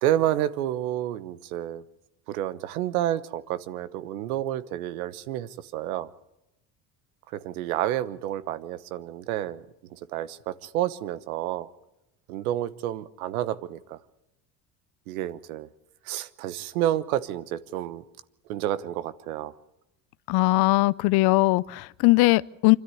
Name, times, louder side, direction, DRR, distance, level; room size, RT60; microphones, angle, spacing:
voice 1, 0.0-1.8 2.3-6.1 7.3-9.6 9.9-11.7 12.3-14.0 15.1-15.7 16.0-18.0 18.5-19.5, right 12 dB, 85° right, 1.1 m, -29 dB
voice 2, 20.3-22.8, left 21 dB, 60° left, 0.7 m, -20 dB
25.0 x 13.0 x 9.9 m
hypercardioid pair, 80°, 42 cm